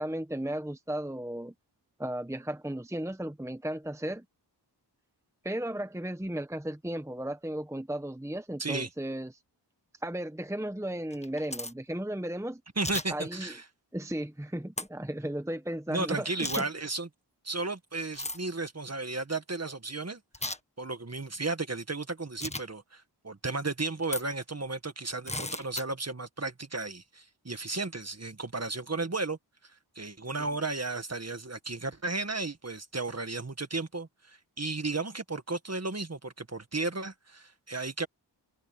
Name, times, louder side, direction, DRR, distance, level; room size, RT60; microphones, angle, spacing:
voice 1, 0.0-1.5 2.0-4.2 5.4-9.3 10.0-12.6 13.1-13.5 13.9-16.6, right 1 dB, 5° right, 1.2 m, -35 dB
sound 1, 11.1-11.7 12.8-13.1 14.8-14.9 16.4-16.6 18.1-18.4 20.3-20.6 22.4-22.6 24.0-24.2 25.3-25.8, left 1 dB, 15° left, 1.6 m, -35 dB
voice 2, 12.8-13.6 15.9-17.1 17.4-20.2 20.8-29.4 29.6-38.1, right 3 dB, 35° right, 1.9 m, -34 dB
wide cardioid pair, 55°, 43 cm